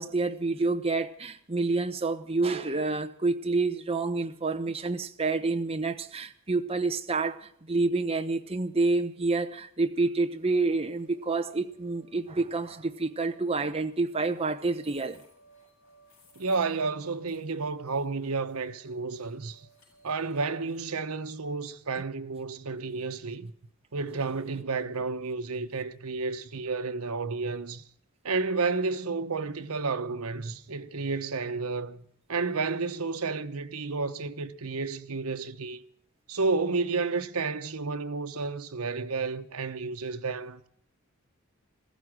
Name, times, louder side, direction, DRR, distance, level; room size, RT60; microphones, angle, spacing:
voice 1, 0.0-15.2, right 3 dB, 25° right, 1.0 m, -28 dB
sound 1, 10.4-20.8, right 2 dB, 65° left, 7.9 m, -62 dB
voice 2, 16.4-19.6 20.0-23.5 23.9-27.8 28.2-35.8 36.3-40.7, right 4 dB, 90° right, 1.1 m, -31 dB
15.0 x 15.0 x 6.1 m
head